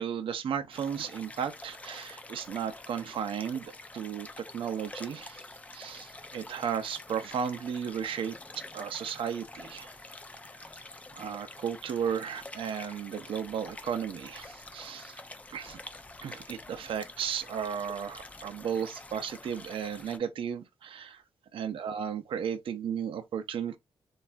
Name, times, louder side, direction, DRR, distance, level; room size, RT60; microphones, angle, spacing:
voice 1, 0.0-4.3 4.5-5.5 5.7-9.9 11.2-15.2 15.5-15.8 16.2-21.2 21.5-23.8, right 8 dB, 65° right, 0.5 m, -34 dB
sound 1, 0.7-20.2, left 2 dB, 15° left, 0.4 m, -47 dB
3.2 x 2.3 x 2.4 m
wide cardioid pair, 145°, 10 cm